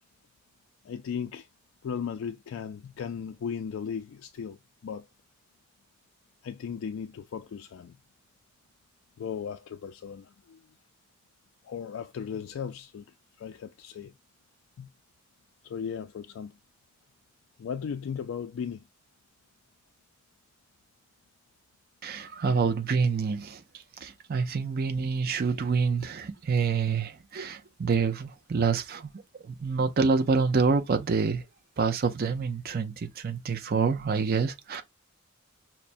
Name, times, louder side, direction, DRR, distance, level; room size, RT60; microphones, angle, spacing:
voice 1, 0.8-1.5 1.8-5.1 6.4-8.0 9.2-10.6 11.6-13.1 13.4-14.1 14.8-14.9 15.6-16.5 17.6-18.8, left 7 dB, 70° left, 0.3 m, -36 dB
voice 2, 22.0-23.6 24.0-29.1 29.4-31.5 31.8-34.8, right 5 dB, 50° right, 0.5 m, -27 dB
5.6 x 2.1 x 2.5 m
head